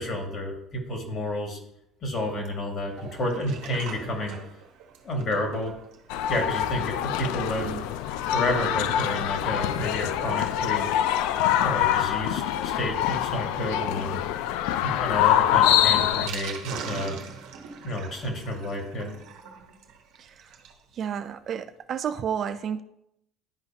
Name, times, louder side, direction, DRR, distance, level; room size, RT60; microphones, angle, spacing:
voice 1, 0.0-1.6 2.0-4.4 5.0-5.7 6.3-7.7 8.3-10.9 11.5-14.2 14.8-17.2 17.8-19.1, left 1 dB, 45° left, 1 dB, 2.1 m, -30 dB
Sink (filling or washing), 2.8-20.8 21.2-21.3 21.5-21.6 21.9-22.0, right 6 dB, 75° right, 1.0 m, -44 dB
sound 1, 6.1-16.3, left 11 dB, 80° left, 0.3 m, -25 dB
voice 2, 20.2-20.5 20.9-22.8, right 8 dB, 45° right, 11 dB, 0.4 m, -31 dB
11.5 x 4.0 x 2.9 m, 0.79 s
supercardioid pair, 105°, 0 cm